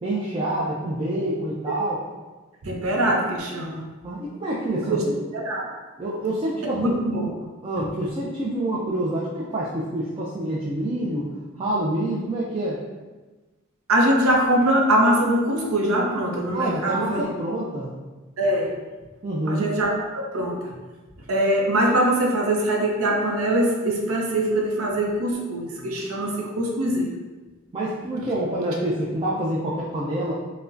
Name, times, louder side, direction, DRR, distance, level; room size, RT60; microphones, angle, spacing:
voice 1, 0.0-2.0 4.0-5.1 6.0-7.0 7.6-11.3 11.6-12.8 16.5-17.9 19.2-19.7 27.7-30.3, right 1 dB, 25° right, -6 dB, 0.4 m, -27 dB
voice 2, 2.6-3.8 4.9-5.0 5.3-5.7 6.6-7.3 13.9-17.3 18.4-18.7 19.5-20.7 21.3-27.1, right 1 dB, 80° right, 0 dB, 0.6 m, -22 dB
4.7 x 2.1 x 2.5 m, 1.2 s
head